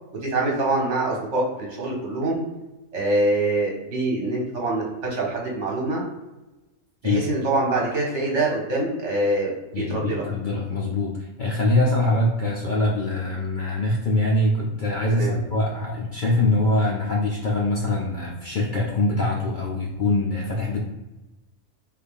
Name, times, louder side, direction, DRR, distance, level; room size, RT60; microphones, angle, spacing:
voice 1, 0.2-2.4 2.9-6.0 7.0-10.2 15.1-15.4, right 2 dB, 60° right, -2 dB, 1.3 m, -25 dB
voice 2, 9.7-20.8, left 2 dB, 75° left, -3 dB, 0.4 m, -23 dB
3.5 x 2.3 x 3.4 m, 1.1 s
omnidirectional pair, 1.5 m